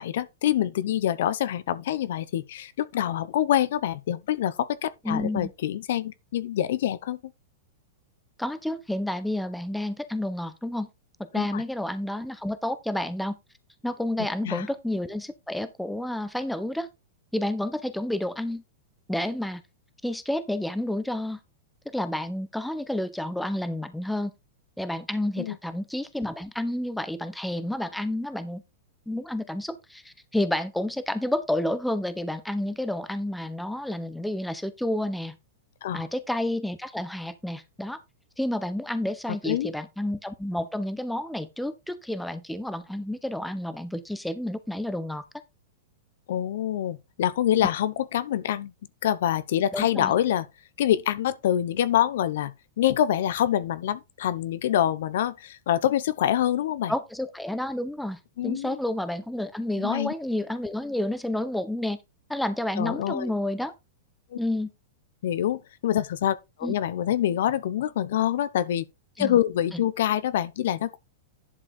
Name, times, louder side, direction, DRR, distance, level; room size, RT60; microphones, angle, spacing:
voice 1, 0.0-7.2 11.3-11.6 14.4-14.6 25.4-25.5 35.8-36.0 39.5-39.7 46.3-48.7 49.0-50.4 50.8-52.5 52.8-56.9 58.4-58.8 59.8-60.1 62.8-63.3 65.2-68.8 69.2-71.0, left 11 dB, 70° left, 0.9 m, -26 dB
voice 2, 5.0-5.5 8.4-10.9 11.2-13.4 13.8-16.9 17.3-18.6 19.1-19.6 20.0-21.4 21.8-24.3 24.8-28.6 29.1-35.3 35.9-38.0 38.4-45.2 49.7-50.1 56.9-62.0 62.3-63.7 64.4-64.7 66.6-66.7 69.2-69.4 69.7-69.8, left 1 dB, ahead, 1.2 m, -30 dB
11.0 x 4.9 x 4.3 m
hypercardioid pair, 130°, 0 cm